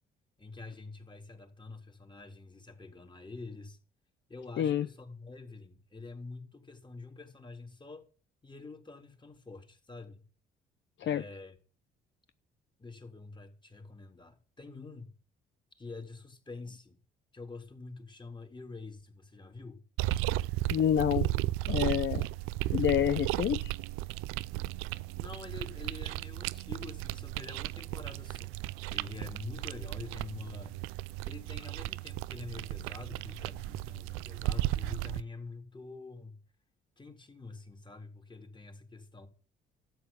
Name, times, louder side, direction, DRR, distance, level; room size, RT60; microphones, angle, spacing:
voice 1, 0.4-3.8 4.3-8.1 8.4-10.3 11.0-11.6 12.8-15.1 15.8-17.0 17.3-19.8 25.1-28.5 28.9-30.7 31.2-36.4 37.0-39.3, left 3 dB, 20° left, 3.7 m, -46 dB
voice 2, 4.6-4.9 11.0-11.2 20.7-21.3 21.7-22.3 22.7-23.7, left 10 dB, 60° left, 0.8 m, -28 dB
sound 1, 20.0-35.2, right 17 dB, 85° right, 0.5 m, -35 dB
13.0 x 8.5 x 7.1 m
supercardioid pair, 60°, 21 cm